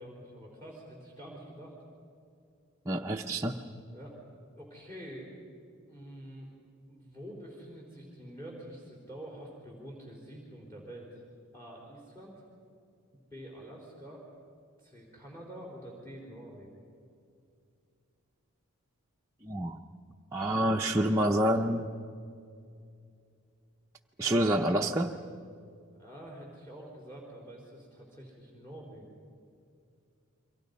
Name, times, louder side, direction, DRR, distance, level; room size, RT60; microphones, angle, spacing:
voice 1, 0.0-1.7 3.9-4.2 4.5-5.3 5.9-6.5 6.9-11.2 11.5-12.4 13.3-14.3 14.8-16.8 26.0-29.1, right 1 dB, 15° left, -2 dB, 4.1 m, -47 dB
voice 2, 2.9-3.6 19.4-19.8 20.3-21.9 24.2-25.1, right 1 dB, 15° right, -1 dB, 0.7 m, -27 dB
29.5 x 23.5 x 5.4 m, 2.4 s
head